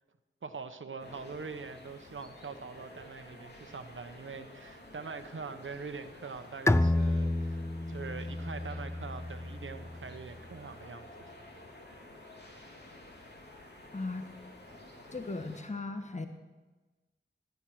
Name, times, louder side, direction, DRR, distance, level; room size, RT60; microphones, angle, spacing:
voice 1, 0.4-11.3, right 4 dB, 70° right, 8 dB, 1.0 m, -43 dB
sound 1, 1.0-15.6, left 1 dB, 55° left, 2.9 m, -51 dB
Bowed string instrument, 6.7-10.1, left 1 dB, 15° left, 0.5 m, -30 dB
voice 2, 13.9-14.3 15.1-16.3, left 3 dB, 35° left, 6 dB, 1.3 m, -37 dB
16.5 x 10.5 x 6.1 m, 1.2 s
cardioid pair, 45°, 21 cm